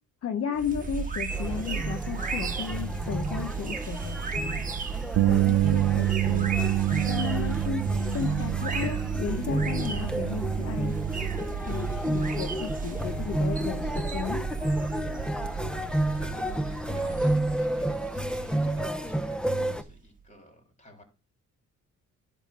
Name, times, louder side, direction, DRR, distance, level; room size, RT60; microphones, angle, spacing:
voice 1, 0.2-4.6 5.3-6.5 7.1-7.8 8.1-10.9 11.7-14.4, left 7 dB, 55° left, 7 dB, 1.0 m, -34 dB
sound 1, 0.5-20.0, right 5 dB, 25° right, 1.5 m, -35 dB
sound 2, 1.3-19.8, right 1 dB, 5° left, 0.9 m, -31 dB
Bass guitar, 5.1-11.4, right 16 dB, 60° right, 0.7 m, -27 dB
voice 2, 11.6-12.0 15.7-21.0, equal, 25° left, 2 dB, 3.6 m, -52 dB
11.0 x 3.6 x 6.6 m, 0.32 s
cardioid pair, 90°, 30 cm